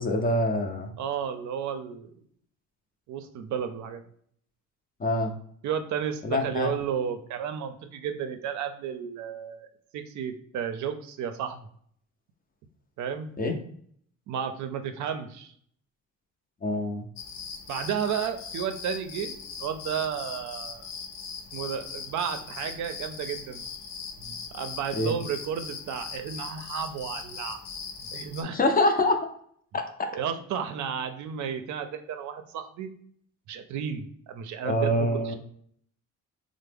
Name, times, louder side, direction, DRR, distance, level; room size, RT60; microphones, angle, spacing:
voice 1, 0.0-0.9 5.0-5.3 6.2-6.7 13.4-13.6 16.6-17.1 25.0-25.1 28.5-29.3 29.7-29.8 34.6-35.3, left 1 dB, 30° left, 3 dB, 0.5 m, -25 dB
voice 2, 1.0-2.1 3.1-4.0 5.6-9.7 9.9-11.7 13.0-13.3 14.3-15.5 17.7-20.8 21.5-23.6 24.2-27.6 28.0-28.6 30.1-32.9 33.5-35.3, right 8 dB, 70° right, 8 dB, 0.5 m, -33 dB
sound 1, 17.2-28.4, left 5 dB, 85° left, 0.6 m, -40 dB
3.2 x 2.0 x 3.4 m, 0.62 s
cardioid pair, 90°, 30 cm